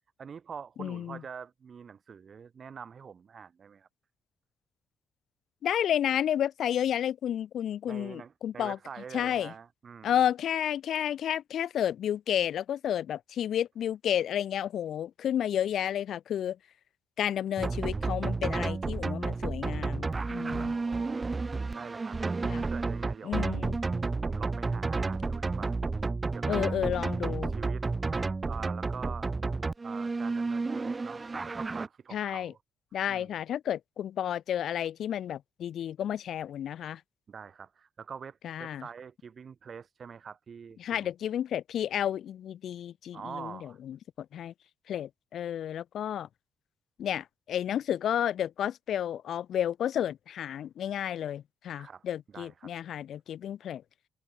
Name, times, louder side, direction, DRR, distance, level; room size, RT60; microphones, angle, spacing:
voice 1, 0.2-3.9 7.9-10.2 20.4-21.3 21.7-22.2 22.5-23.4 24.2-25.8 26.3-26.6 26.9-29.3 29.8-32.6 33.1-33.3 37.3-41.1 43.1-43.8 51.8-52.0 52.3-52.7, right 6 dB, 45° right, 7.6 m, -45 dB
voice 2, 0.8-1.2 5.6-8.8 9.1-9.5 10.0-16.6 17.2-20.7 22.4-22.6 23.2-23.8 26.5-27.5 32.1-32.5 32.9-37.0 38.4-38.8 40.8-44.5 44.9-46.3 47.0-53.8, left 10 dB, 70° left, 0.4 m, -31 dB
sound 1, 17.6-31.9, right 3 dB, 25° right, 0.6 m, -31 dB
cardioid pair, 90°, 0 cm